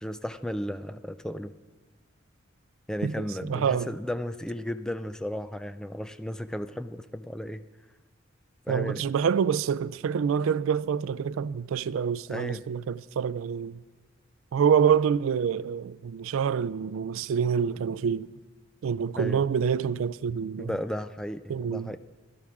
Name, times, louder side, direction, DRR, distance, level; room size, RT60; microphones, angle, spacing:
voice 1, 0.0-1.5 2.9-7.6 8.7-9.0 12.3-12.7 19.2-19.5 20.6-22.0, equal, 5° left, 0.3 m, -34 dB
voice 2, 3.5-3.9 8.7-13.8 14.5-18.3 18.8-20.7 21.5-21.9, right 7 dB, 90° right, 0.3 m, -26 dB
17.0 x 12.0 x 3.6 m
head